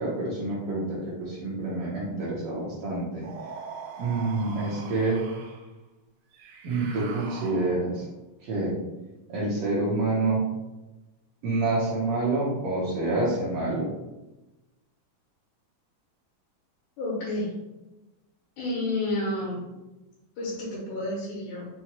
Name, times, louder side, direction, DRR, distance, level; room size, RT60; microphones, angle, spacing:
voice 1, 0.0-3.2 4.0-5.2 6.6-8.0 8.4-8.7 9.3-10.4 11.4-13.9, right 2 dB, 70° right, -7 dB, 1.6 m, -27 dB
sound 1, 3.2-5.7 6.3-8.0, right 5 dB, 90° right, 1.3 m, -42 dB
voice 2, 17.0-17.5 18.6-19.6 20.4-21.7, left 1 dB, 80° left, -6 dB, 2.6 m, -30 dB
5.8 x 2.2 x 2.9 m, 1.0 s
omnidirectional pair, 3.4 m